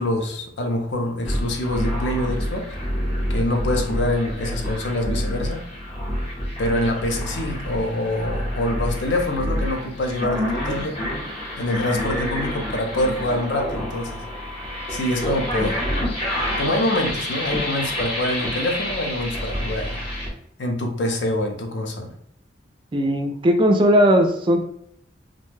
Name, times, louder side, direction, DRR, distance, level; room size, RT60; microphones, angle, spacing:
voice 1, 0.0-2.8 3.3-5.6 6.6-11.0 11.6-14.2 14.9-15.8 16.6-20.0 20.6-22.1, left 1 dB, 70° left, 3 dB, 0.6 m, -25 dB
sound 1, 1.2-20.3, equal, 30° left, 0.8 m, -28 dB
voice 2, 22.9-24.6, equal, 25° right, 5 dB, 0.3 m, -17 dB
2.5 x 2.2 x 3.1 m, 0.71 s
head